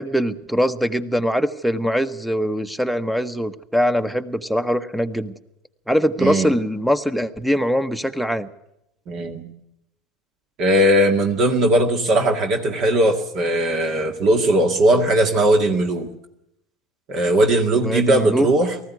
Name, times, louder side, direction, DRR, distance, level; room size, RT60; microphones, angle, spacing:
voice 1, 0.0-5.3 5.9-8.5 17.8-18.5, equal, ahead, 13 dB, 1.0 m, -22 dB
voice 2, 6.2-6.5 9.1-9.4 10.6-16.1 17.1-18.7, right 1 dB, 50° right, 5 dB, 2.0 m, -18 dB
19.0 x 14.5 x 9.5 m, 0.83 s
hypercardioid pair, 85°, 0 cm